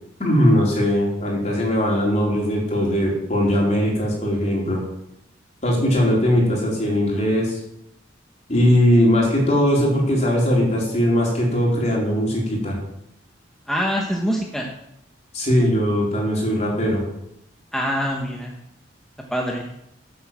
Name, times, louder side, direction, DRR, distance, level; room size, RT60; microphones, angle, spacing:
voice 1, 0.2-4.8 5.6-7.6 8.5-12.8 15.3-17.0, equal, 35° left, -2 dB, 4.1 m, -20 dB
voice 2, 13.7-14.7 17.7-18.6 19.3-19.7, equal, ahead, -1 dB, 1.2 m, -24 dB
11.0 x 7.8 x 7.5 m, 0.80 s
head